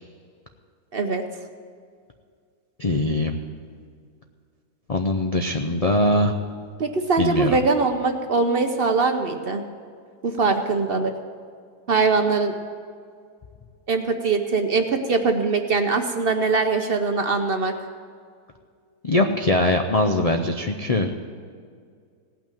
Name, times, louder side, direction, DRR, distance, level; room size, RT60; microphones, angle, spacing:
voice 1, 0.9-1.2 6.8-9.6 10.2-11.1 11.9-12.5 13.9-17.7, right 4 dB, 50° right, 5 dB, 0.8 m, -22 dB
voice 2, 2.8-3.4 4.9-6.3 7.2-7.6 19.0-21.1, left 2 dB, 70° left, 4 dB, 0.3 m, -21 dB
17.0 x 6.0 x 8.9 m, 2.1 s
omnidirectional pair, 1.7 m